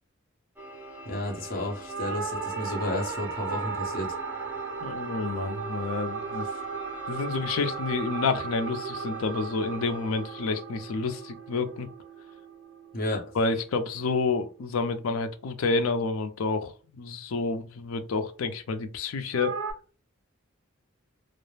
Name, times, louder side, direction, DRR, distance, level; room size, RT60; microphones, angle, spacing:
sound 1, 0.6-16.2, right 1 dB, 10° right, 0.6 m, -44 dB
voice 1, 1.1-4.2 12.9-13.2, left 1 dB, 45° left, 0.8 m, -32 dB
sound 2, 1.9-12.4 19.3-19.7, right 5 dB, 65° right, 0.4 m, -36 dB
voice 2, 4.8-6.5 7.1-11.9 13.4-19.6, left 4 dB, 80° left, 0.4 m, -29 dB
2.3 x 2.0 x 3.1 m
head